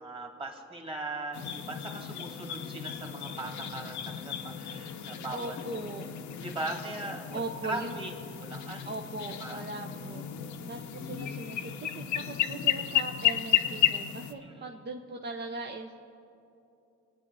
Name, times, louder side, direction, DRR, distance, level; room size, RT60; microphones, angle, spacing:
voice 1, 0.0-5.7 6.4-8.1 8.4-9.0 9.4-9.6 14.4-14.7, right 2 dB, 15° right, 1 dB, 2.2 m, -39 dB
sound 1, 1.3-14.3, left 11 dB, 70° left, 0.9 m, -33 dB
voice 2, 5.3-6.1 7.3-7.9 8.8-10.2 10.7-16.1, right 2 dB, 35° right, 2 dB, 0.9 m, -39 dB
24.0 x 9.5 x 4.1 m, 2.7 s
cardioid pair, 90°, 30 cm